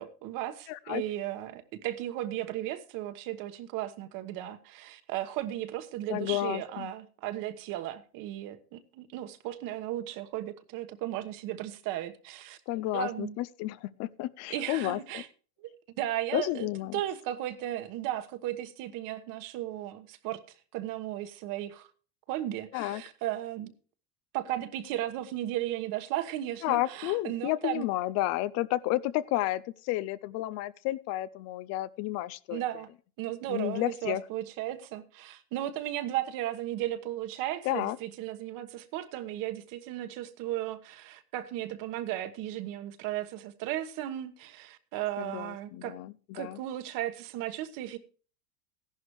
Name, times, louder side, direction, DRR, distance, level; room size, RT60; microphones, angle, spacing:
voice 1, 0.0-12.6 12.9-13.4 14.5-15.3 15.6-15.7 16.0-20.4 20.7-21.9 22.3-23.7 24.3-27.9 32.5-32.9 33.2-46.0 46.3-48.0, right 13 dB, 45° right, 1.3 m, -35 dB
voice 2, 0.7-1.0 6.1-6.9 12.7-15.2 16.3-17.0 22.7-23.0 26.6-32.6 33.5-34.2 37.6-38.0 45.2-46.6, left 16 dB, 35° left, 0.5 m, -31 dB
14.5 x 11.5 x 3.1 m
supercardioid pair, 135°, 45 cm